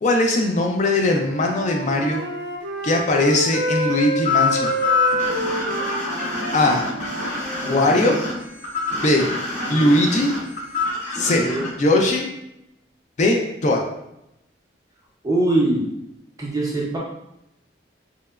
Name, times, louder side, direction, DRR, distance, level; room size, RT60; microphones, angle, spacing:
voice 1, 0.0-2.3 2.8-4.7 6.5-6.8 7.7-8.2 9.0-9.2 9.7-10.3 11.1-11.4 11.8-12.3 13.2-13.8, left 2 dB, 40° left, 1 dB, 0.3 m, -19 dB
Wind instrument woodwind instrument, 1.1-7.9, right 1 dB, 75° right, 0.4 m, -28 dB
sound 1, 4.2-11.7, left 4 dB, 75° left, 1.3 m, -25 dB
voice 2, 7.6-8.1 9.7-9.9 11.2-11.7 15.2-15.8 16.4-17.0, right 2 dB, 20° right, -5 dB, 0.5 m, -23 dB
2.8 x 2.1 x 2.3 m, 0.85 s
head